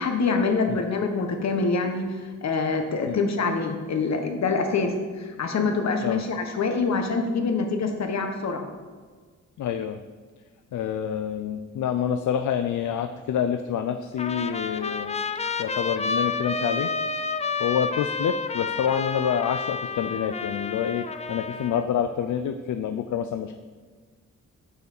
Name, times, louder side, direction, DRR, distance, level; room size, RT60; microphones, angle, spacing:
voice 1, 0.0-2.1 2.4-8.7, left 4 dB, 65° left, 5 dB, 1.3 m, -25 dB
voice 2, 9.6-10.0 10.7-15.1 15.6-16.9 17.6-23.6, left 8 dB, 80° left, 8 dB, 0.5 m, -27 dB
Trumpet, 14.2-21.8, left 4 dB, 25° left, 0.4 m, -30 dB
8.0 x 5.7 x 6.6 m, 1.5 s
wide cardioid pair, 105°, 30 cm